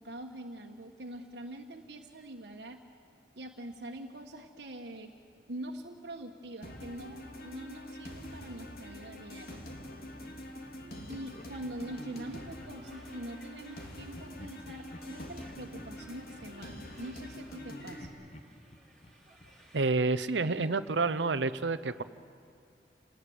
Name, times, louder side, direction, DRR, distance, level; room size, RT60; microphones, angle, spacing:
voice 1, 0.0-2.8 3.4-5.1 5.5-9.7 11.1-18.1, right 1 dB, 65° right, 1 dB, 1.4 m, -44 dB
sound 1, 6.6-18.0, left 1 dB, 55° left, 2.8 m, -45 dB
Laughter, 10.8-12.9 14.1-17.6 18.0-20.7, left 1 dB, 40° left, 1.4 m, -55 dB
sound 2, 11.1-19.9, right 1 dB, 5° left, 4.0 m, -60 dB
voice 2, 19.7-22.0, right 3 dB, 85° right, 12 dB, 0.8 m, -29 dB
29.0 x 19.0 x 9.5 m, 2.4 s
head